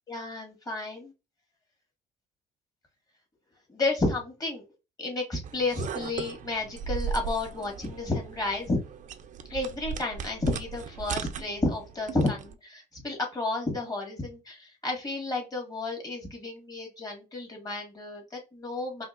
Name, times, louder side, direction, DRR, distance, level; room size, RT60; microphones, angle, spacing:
voice 1, 0.1-1.1 3.7-4.6 5.0-8.8 9.5-19.0, left 2 dB, 20° left, 1 dB, 1.6 m, -31 dB
sound 1, 5.4-12.5, right 6 dB, 45° right, 0.5 m, -37 dB
5.1 x 2.8 x 2.5 m, 0.28 s
cardioid pair, 110°, 17 cm